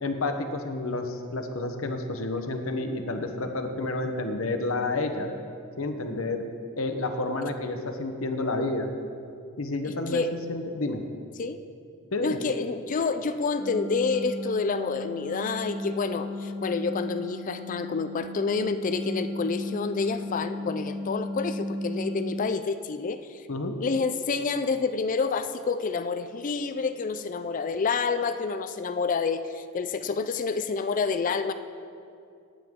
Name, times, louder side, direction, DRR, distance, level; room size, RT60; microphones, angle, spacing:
voice 1, 0.0-5.3 5.8-6.4 6.8-8.9 9.6-10.2 10.5-11.0 12.1-12.4 23.5-23.8, left 2 dB, 80° left, 6 dB, 0.9 m, -30 dB
voice 2, 9.8-10.3 11.4-11.6 12.2-23.4 23.8-31.5, left 4 dB, 40° left, 10 dB, 0.4 m, -28 dB
sound 1, 13.6-22.4, equal, 55° right, 2.0 m, -35 dB
18.5 x 7.8 x 3.7 m, 2.4 s
head